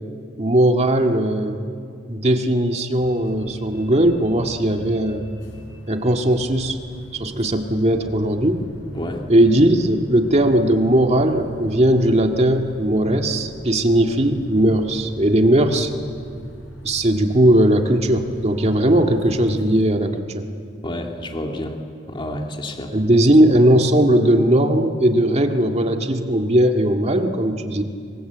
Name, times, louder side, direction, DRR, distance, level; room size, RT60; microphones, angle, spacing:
voice 1, 0.4-1.6 2.1-5.3 5.9-6.8 7.1-8.6 9.3-15.9 16.8-20.4 22.9-27.8, right 1 dB, 35° right, 4 dB, 2.0 m, -18 dB
Bus, 3.0-19.9, equal, 85° left, 5.7 m, -42 dB
voice 2, 8.9-9.3 20.8-21.8 22.1-22.9, left 1 dB, 25° left, 2 dB, 2.1 m, -29 dB
29.0 x 24.0 x 8.1 m, 2.3 s
head